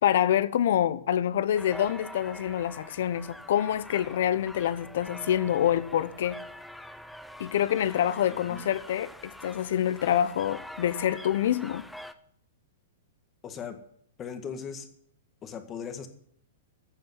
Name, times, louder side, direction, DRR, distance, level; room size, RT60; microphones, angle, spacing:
voice 1, 0.0-6.4 7.4-11.9, left 10 dB, 60° left, 1.0 m, -26 dB
sound 1, 1.5-12.1, left 1 dB, ahead, 0.7 m, -45 dB
voice 2, 8.3-8.7 13.4-13.8 14.2-14.9 15.4-16.1, left 7 dB, 20° left, 1.8 m, -38 dB
15.0 x 7.0 x 9.9 m
hypercardioid pair, 160°, 0 cm